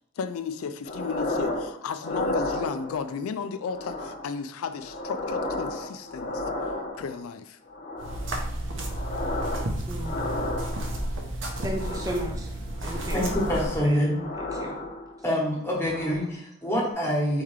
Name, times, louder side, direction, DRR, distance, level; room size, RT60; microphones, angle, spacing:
voice 1, 0.2-6.4 7.0-7.6, left 6 dB, 80° left, 10 dB, 0.4 m, -34 dB
sound 1, 0.9-1.7 2.0-3.2 3.7-4.3 4.7-7.2 7.7-8.3 8.7-9.7 10.0-11.1 11.7-12.3 12.7-15.2 15.7-16.3 16.7-16.9, left 2 dB, 40° left, 0.7 m, -33 dB
sound 2, 8.0-13.8, right 1 dB, 60° right, 0.8 m, -32 dB
voice 2, 9.9-10.3 11.6-12.5 12.8-13.2 13.8-14.1 14.5-14.8, right 1 dB, 15° right, 0 dB, 0.5 m, -34 dB
voice 3, 13.1-14.1 15.2-17.4, equal, 10° left, -3 dB, 1.1 m, -26 dB
4.4 x 3.7 x 3.2 m, 0.77 s
head